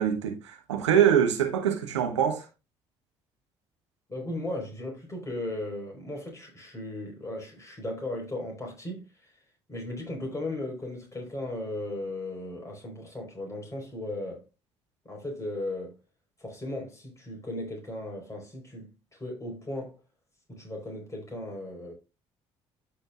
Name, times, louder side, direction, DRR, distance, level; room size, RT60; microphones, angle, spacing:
voice 1, 0.0-2.4, right 9 dB, 85° right, 1.3 m, -24 dB
voice 2, 4.1-9.3 9.7-14.4 15.0-16.0 16.4-20.0 20.5-21.9, left 1 dB, 20° left, 4.7 m, -36 dB
13.0 x 5.2 x 2.5 m
figure-of-eight pair, 50°, 15 cm